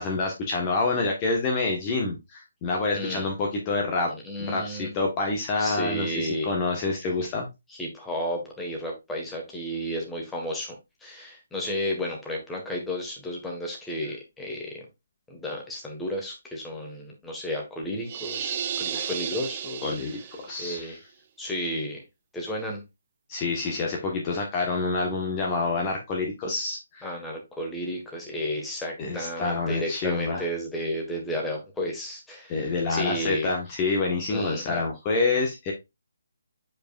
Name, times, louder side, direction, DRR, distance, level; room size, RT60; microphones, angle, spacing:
voice 1, 0.0-4.1 4.5-7.5 18.9-19.1 19.8-20.1 20.4-21.0 23.3-27.1 29.0-30.4 32.5-35.7, left 3 dB, 25° left, 1.3 m, -27 dB
voice 2, 2.9-3.3 4.1-4.9 5.6-6.5 7.7-10.7 11.0-14.8 15.3-19.9 20.6-21.0 21.4-22.0 22.3-22.8 27.0-33.5 34.3-34.8, equal, 5° left, 1.6 m, -32 dB
sound 1, 18.1-20.6, right 8 dB, 35° right, 0.6 m, -33 dB
7.5 x 5.0 x 2.5 m
figure-of-eight pair, 140°, 0 cm